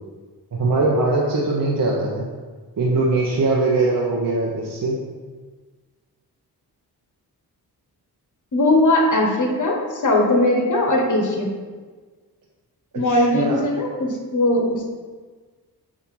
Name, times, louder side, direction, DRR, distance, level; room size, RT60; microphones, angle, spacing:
voice 1, 0.5-2.2 2.8-5.0 13.1-13.6, right 3 dB, 55° right, -4 dB, 1.1 m, -21 dB
voice 2, 8.5-11.5 12.9-14.9, left 1 dB, 50° left, 1 dB, 1.5 m, -19 dB
7.4 x 2.8 x 5.5 m, 1.4 s
cardioid pair, 60°, 38 cm